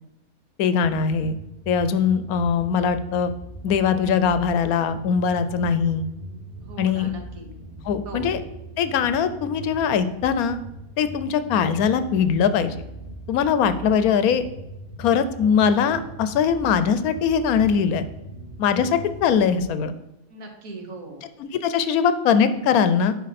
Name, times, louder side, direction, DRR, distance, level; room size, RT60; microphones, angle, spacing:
voice 1, 0.6-1.4 1.7-3.3 3.6-6.1 6.8-7.1 7.8-8.4 8.8-10.6 11.0-12.8 13.3-14.5 15.0-18.0 18.6-19.9 21.4-23.2, left 7 dB, 90° left, 12 dB, 1.1 m, -21 dB
sound 1, 0.8-19.6, right 1 dB, 20° right, 2.5 m, -40 dB
voice 2, 6.6-7.5 8.0-8.3 20.3-21.3, right 2 dB, 70° right, 4 dB, 1.6 m, -38 dB
10.5 x 4.5 x 4.1 m, 0.92 s
omnidirectional pair, 1.5 m